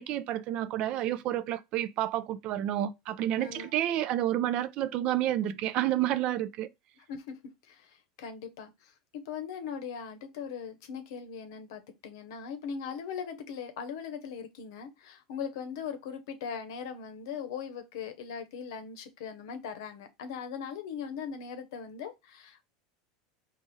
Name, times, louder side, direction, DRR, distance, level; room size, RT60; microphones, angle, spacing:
voice 1, 0.0-6.7, right 12 dB, 50° right, 0.4 m, -30 dB
voice 2, 3.4-3.7 7.0-7.3 7.7-22.6, left 7 dB, 75° left, 0.7 m, -40 dB
4.1 x 2.4 x 3.1 m
supercardioid pair, 105°, 2 cm